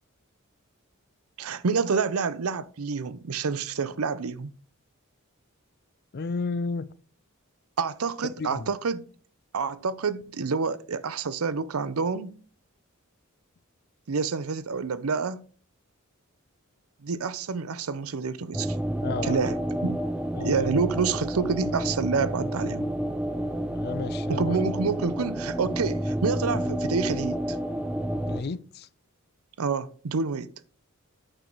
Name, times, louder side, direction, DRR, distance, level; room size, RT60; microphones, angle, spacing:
voice 1, 1.4-4.5 7.8-9.0 9.5-12.4 14.1-15.4 17.0-18.8 19.2-20.0 20.4-22.8 24.3-27.6 29.6-30.5, right 5 dB, 90° right, 0.6 m, -28 dB
voice 2, 6.1-6.9 8.4-8.7 19.0-19.6 20.3-20.7 23.7-24.6 28.3-28.9, left 4 dB, 50° left, 0.4 m, -33 dB
sound 1, 18.5-28.4, right 1 dB, 5° right, 0.5 m, -30 dB
8.9 x 6.1 x 3.9 m
head